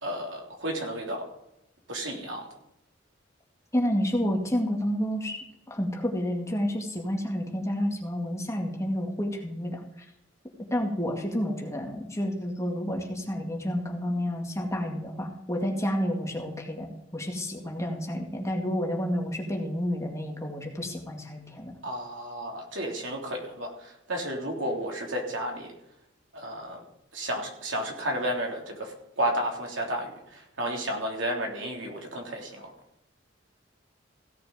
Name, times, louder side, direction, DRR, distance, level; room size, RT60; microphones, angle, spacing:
voice 1, 0.0-1.2 1.9-2.5 21.8-25.7 26.3-26.8 27.1-32.7, right 1 dB, 75° right, 0 dB, 3.3 m, -32 dB
voice 2, 3.7-5.4 5.7-9.8 10.7-16.9 17.1-21.7, equal, 15° left, 1 dB, 2.2 m, -30 dB
16.5 x 6.7 x 5.2 m, 0.81 s
head